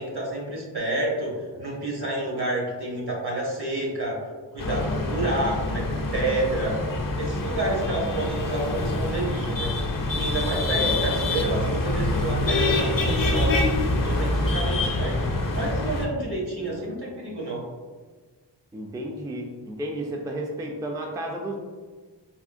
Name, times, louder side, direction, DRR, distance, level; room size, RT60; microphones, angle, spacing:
voice 1, 0.0-1.3 1.6-4.1 4.5-6.8 7.2-9.7 10.1-13.6 13.9-15.2 15.5-17.6, right 2 dB, 60° right, -3 dB, 1.1 m, -29 dB
sound 1, 4.6-16.1, left 2 dB, 50° left, 0.5 m, -26 dB
voice 2, 8.0-8.5 10.8-11.1 16.6-17.0 18.7-21.6, right 1 dB, 10° right, 1 dB, 0.3 m, -33 dB
3.6 x 2.7 x 2.5 m, 1.4 s
wide cardioid pair, 55°, 44 cm